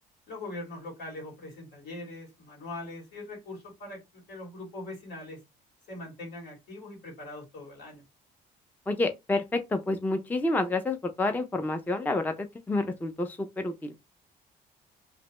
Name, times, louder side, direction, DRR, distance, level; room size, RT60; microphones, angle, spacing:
voice 1, 0.3-5.4 5.9-8.0, left 2 dB, 75° left, 2.4 m, -41 dB
voice 2, 8.9-13.9, left 2 dB, 10° left, 0.5 m, -29 dB
3.3 x 2.9 x 3.0 m
cardioid pair, 110°, 17 cm